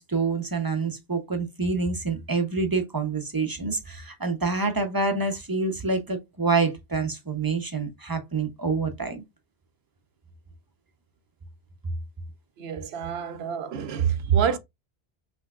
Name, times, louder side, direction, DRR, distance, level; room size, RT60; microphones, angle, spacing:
voice 1, 0.0-9.2, right 4 dB, 25° right, 0.6 m, -27 dB
voice 2, 12.6-14.6, right 8 dB, 80° right, 0.8 m, -26 dB
5.7 x 3.3 x 2.3 m
omnidirectional pair, 1.0 m